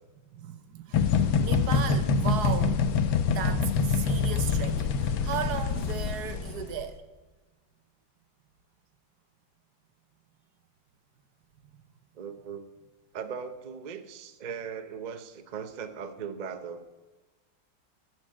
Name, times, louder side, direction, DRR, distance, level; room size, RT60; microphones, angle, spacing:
voice 1, 0.3-7.0, right 9 dB, 65° right, 10 dB, 1.3 m, -36 dB
sound 1, 0.9-6.8, left 5 dB, 85° left, 1.6 m, -25 dB
voice 2, 12.2-12.7 13.1-16.8, right 6 dB, 85° right, 9 dB, 0.4 m, -38 dB
14.0 x 6.3 x 8.6 m, 1.2 s
omnidirectional pair, 2.1 m